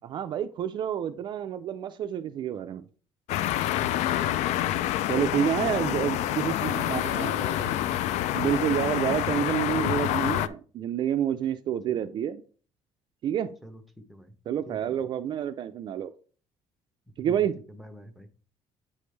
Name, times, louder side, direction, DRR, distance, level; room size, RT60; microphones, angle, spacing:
voice 1, 0.0-2.8 5.1-7.4 8.3-12.4 13.2-13.5 14.5-16.1 17.2-17.5, right 9 dB, 40° right, 9 dB, 0.3 m, -28 dB
sound 1, 3.3-10.5, left 13 dB, 75° left, 0.4 m, -27 dB
voice 2, 4.2-4.5 5.6-8.0 11.9-12.0 13.6-14.3 14.7-15.0 17.2-18.3, equal, ahead, 8 dB, 0.6 m, -43 dB
8.4 x 5.1 x 3.3 m, 0.41 s
cardioid pair, 175°, 12 cm